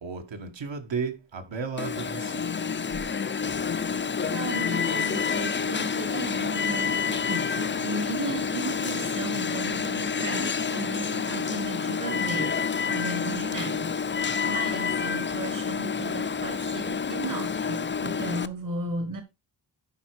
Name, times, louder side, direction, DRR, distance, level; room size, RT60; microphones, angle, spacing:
voice 1, 0.0-2.5, right 5 dB, 70° right, 1.8 m, -34 dB
Alarm, 1.8-18.5, left 6 dB, 25° left, 0.4 m, -28 dB
voice 2, 4.2-12.6 12.8-19.2, right 2 dB, 40° right, 1.4 m, -35 dB
11.5 x 4.6 x 4.8 m
wide cardioid pair, 130°, 47 cm